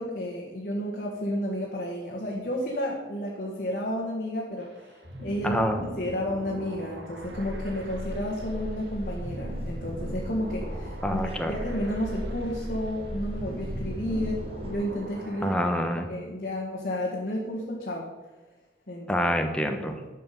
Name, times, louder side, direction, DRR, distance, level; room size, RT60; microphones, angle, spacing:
voice 1, 0.0-5.7 6.0-15.6 16.1-18.1 18.9-19.3, equal, 50° left, -3 dB, 1.8 m, -32 dB
sound 1, 4.6-15.9, right 1 dB, 75° right, 1.7 m, -42 dB
voice 2, 5.4-5.8 11.0-11.5 15.4-16.1 19.1-20.0, equal, 5° left, 5 dB, 1.0 m, -26 dB
sound 2, 7.2-14.7, equal, 30° right, 1.9 m, -36 dB
11.5 x 6.0 x 6.8 m, 1.2 s
head